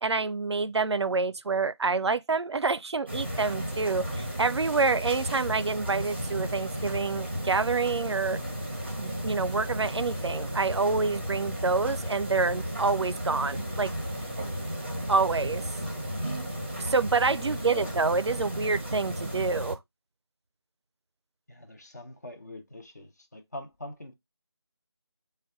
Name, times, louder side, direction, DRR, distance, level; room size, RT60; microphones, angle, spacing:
voice 1, 0.0-8.4 9.0-13.9 15.1-15.6 16.9-19.8, right 4 dB, 75° right, 0.4 m, -27 dB
sound 1, 3.1-19.7, equal, 25° right, 0.6 m, -34 dB
voice 2, 17.4-17.9 21.5-24.1, left 1 dB, 40° left, 0.7 m, -43 dB
4.9 x 2.2 x 3.6 m
figure-of-eight pair, 175°, 14 cm